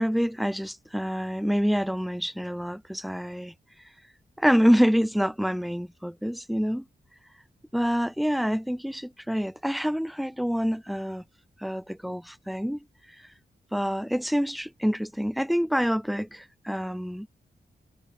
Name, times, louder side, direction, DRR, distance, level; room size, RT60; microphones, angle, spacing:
voice 1, 0.0-3.5 4.4-6.8 7.7-11.2 11.6-12.8 13.7-17.3, equal, ahead, 1.0 m, -26 dB
wide cardioid pair, 130°, 17 cm